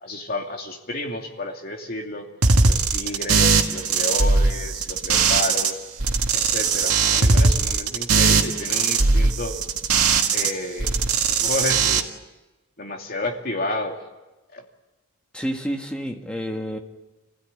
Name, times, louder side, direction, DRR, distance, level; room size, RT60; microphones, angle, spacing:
voice 1, 0.0-2.3 2.6-5.8 6.3-9.6 10.3-10.9 11.3-12.1 12.8-14.0 14.5-14.6, left 2 dB, 40° left, 2 dB, 2.7 m, -31 dB
sound 1, 2.4-5.7 6.0-10.5 10.8-12.0, right 4 dB, 85° right, 1.9 m, -19 dB
voice 2, 15.3-16.8, equal, 5° left, 2 dB, 1.9 m, -29 dB
26.5 x 16.0 x 9.9 m, 1.1 s
head